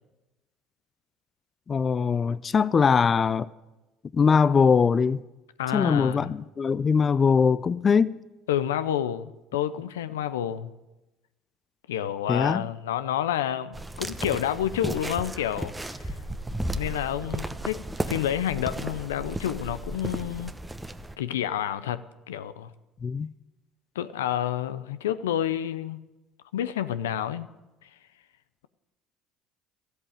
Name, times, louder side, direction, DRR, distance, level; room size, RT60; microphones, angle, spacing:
voice 1, 1.7-3.5 4.1-5.2 5.7-8.2 12.3-12.6 23.0-23.3, left 6 dB, 35° left, 0.4 m, -22 dB
voice 2, 5.6-6.4 8.5-10.7 11.9-16.1 16.7-20.5 21.2-22.7 23.9-26.0 26.5-27.5 27.8-27.9, left 10 dB, 90° left, 0.6 m, -29 dB
sound 1, 13.7-21.1, right 1 dB, 10° right, 1.0 m, -34 dB
13.5 x 8.1 x 8.9 m
hypercardioid pair, 70°, 0 cm